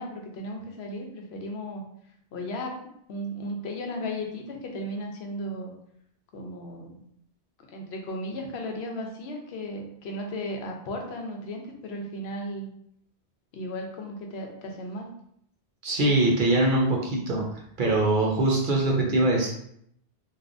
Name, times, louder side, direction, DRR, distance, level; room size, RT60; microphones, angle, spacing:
voice 1, 0.0-1.8 2.3-2.8 3.1-5.7 6.3-7.0 7.7-12.7 13.5-15.1, left 1 dB, 75° left, 2 dB, 0.8 m, -35 dB
voice 2, 15.8-17.4 17.8-19.5, right 2 dB, 55° right, -1 dB, 0.7 m, -22 dB
3.3 x 2.3 x 2.5 m, 0.71 s
omnidirectional pair, 1.1 m